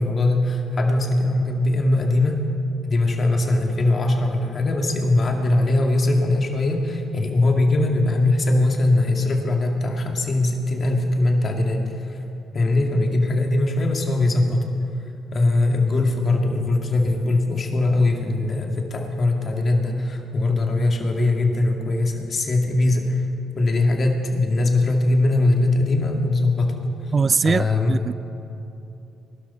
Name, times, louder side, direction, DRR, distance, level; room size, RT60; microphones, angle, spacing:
voice 1, 0.0-2.4 2.8-11.8 12.1-12.2 12.5-14.6 15.3-23.2 23.6-26.7 27.4-28.0, left 2 dB, 45° left, 2 dB, 2.3 m, -21 dB
voice 2, 27.1-28.1, right 5 dB, 40° right, 19 dB, 0.3 m, -21 dB
20.5 x 12.5 x 4.3 m, 2.8 s
hypercardioid pair, 50°, 0 cm